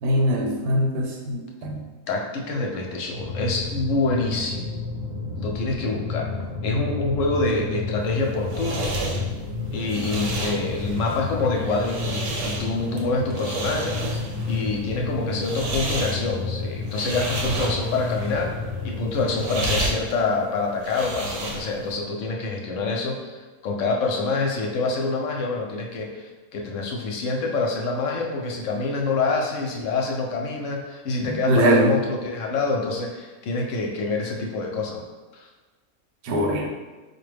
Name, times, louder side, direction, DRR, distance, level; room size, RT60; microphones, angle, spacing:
voice 1, 0.0-1.9 31.3-32.0 36.2-36.7, right 1 dB, 90° right, 1 dB, 1.1 m, -22 dB
voice 2, 2.1-4.7 5.4-6.3 6.6-9.0 9.7-14.0 14.5-18.5 18.8-35.0 35.3-35.5, left 3 dB, 70° left, 0 dB, 0.9 m, -26 dB
sound 1, 3.1-19.8, left 3 dB, 35° right, 0.7 m, -31 dB
sound 2, 8.0-21.9, right 2 dB, 70° right, 0.9 m, -32 dB
4.5 x 2.1 x 3.3 m, 1.2 s
omnidirectional pair, 1.5 m